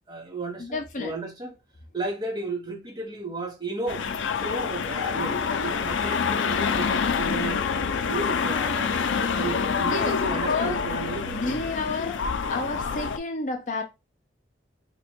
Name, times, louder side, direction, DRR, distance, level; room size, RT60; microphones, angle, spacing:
voice 1, 0.1-1.6 1.9-4.1 4.3-7.6 8.1-8.9 9.3-11.6, right 3 dB, 25° right, 1.1 m, -34 dB
voice 2, 0.6-1.1 9.9-10.8 11.3-12.2 12.5-13.8, left 3 dB, 40° left, 0.6 m, -30 dB
sound 1, 3.9-13.2, left 5 dB, 90° left, 0.4 m, -27 dB
2.9 x 2.6 x 4.4 m
head